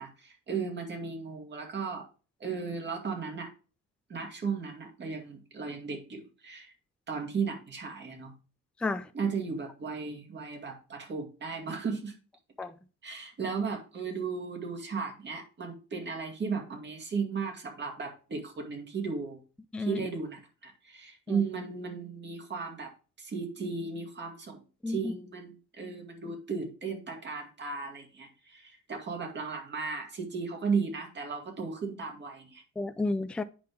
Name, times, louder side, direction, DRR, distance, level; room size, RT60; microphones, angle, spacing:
voice 1, 0.0-2.0 2.4-3.5 4.1-6.7 7.1-8.3 9.1-12.1 13.0-19.4 19.8-22.9 23.2-32.6, right 5 dB, 35° right, 2.2 m, -35 dB
voice 2, 24.8-25.1 32.8-33.4, left 2 dB, 5° left, 0.3 m, -31 dB
8.6 x 5.6 x 3.6 m
cardioid pair, 155°, 29 cm